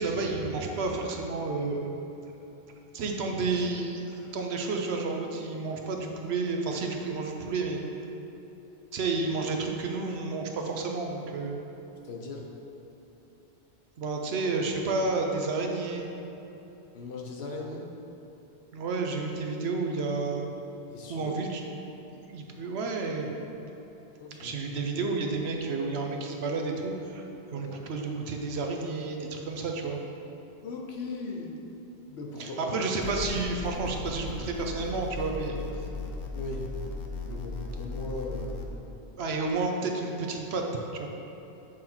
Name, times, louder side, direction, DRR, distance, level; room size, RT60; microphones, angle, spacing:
voice 1, 0.0-2.0 2.9-7.8 8.9-11.6 14.0-16.1 18.7-20.5 21.1-21.6 22.2-23.3 24.4-27.3 27.5-30.0 32.4-35.6 39.2-40.7 40.9-41.1, right 3 dB, 75° right, 2 dB, 0.9 m, -31 dB
voice 2, 12.0-12.4 16.9-17.9 20.9-21.3 24.2-24.6 27.6-27.8 30.6-31.6 32.1-32.8 36.3-36.7 37.3-38.7, left 3 dB, 75° left, 0 dB, 1.1 m, -38 dB
sound 1, 33.0-38.7, left 3 dB, 60° left, 0.7 m, -37 dB
7.7 x 3.8 x 4.4 m, 3.0 s
omnidirectional pair, 1.1 m